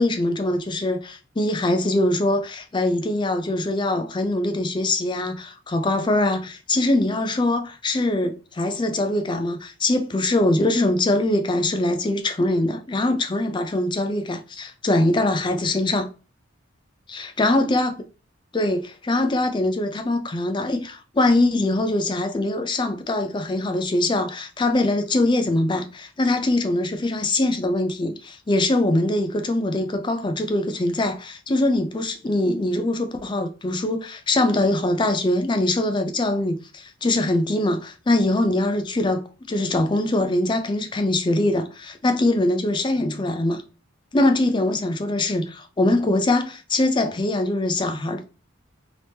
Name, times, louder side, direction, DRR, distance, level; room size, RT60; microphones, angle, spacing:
voice 1, 0.0-16.1 17.1-17.9 18.5-43.6 44.1-48.2, left 2 dB, 20° left, 0.4 m, -22 dB
3.4 x 2.9 x 2.7 m
head